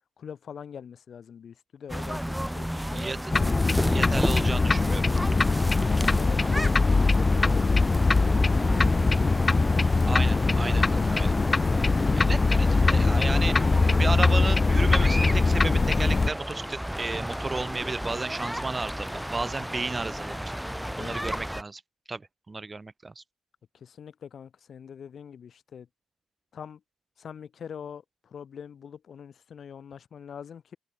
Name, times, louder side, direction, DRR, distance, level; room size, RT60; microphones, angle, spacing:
voice 1, 0.2-3.5 5.9-6.7 7.1-9.6 20.9-21.2 23.7-25.9 26.5-26.8 27.2-30.8, left 7 dB, 55° left, 7.9 m, -43 dB
sound 1, 1.9-21.6, equal, ahead, 4.8 m, -34 dB
voice 2, 2.7-3.2 3.9-5.0 10.1-11.3 12.1-20.5 21.0-21.8 22.1-23.2, right 3 dB, 25° right, 3.1 m, -33 dB
sound 2, 3.3-16.3, left 3 dB, 25° left, 3.6 m, -22 dB
open air
cardioid pair, 90°, 0 cm